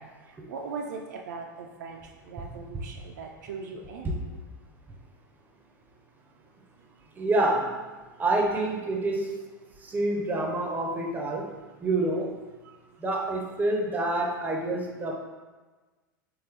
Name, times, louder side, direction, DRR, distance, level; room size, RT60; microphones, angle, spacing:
voice 1, 0.0-4.2 6.8-7.1 8.1-8.2 11.6-11.7 12.6-13.0, right 4 dB, 55° right, 2 dB, 0.4 m, -40 dB
voice 2, 7.2-7.7 8.2-9.3 9.8-11.5 11.8-12.4 13.0-15.2, right 2 dB, 15° right, 1 dB, 0.6 m, -27 dB
4.3 x 3.4 x 3.3 m, 1.3 s
figure-of-eight pair, 85°, 11 cm